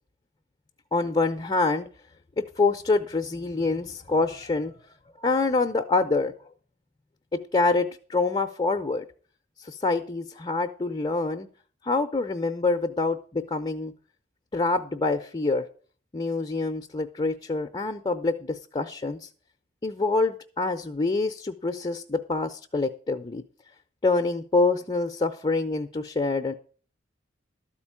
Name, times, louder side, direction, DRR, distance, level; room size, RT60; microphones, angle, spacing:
voice 1, 0.9-1.9 2.4-4.7 5.2-6.3 7.3-9.0 9.6-11.5 11.8-13.9 14.5-15.7 16.1-19.3 19.8-23.4 24.0-26.5, left 3 dB, 25° left, 4 dB, 0.6 m, -26 dB
12.5 x 4.5 x 8.6 m, 0.42 s
head